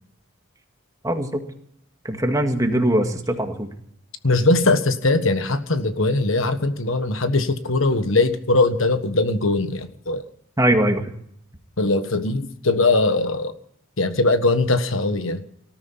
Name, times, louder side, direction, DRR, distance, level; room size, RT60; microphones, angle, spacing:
voice 1, 1.0-1.4 2.1-3.7 10.6-11.1, right 1 dB, 15° right, 5 dB, 1.9 m, -21 dB
voice 2, 4.2-10.2 11.8-13.5 14.0-15.4, left 2 dB, 70° left, 9 dB, 1.5 m, -20 dB
19.0 x 13.5 x 5.7 m, 0.68 s
head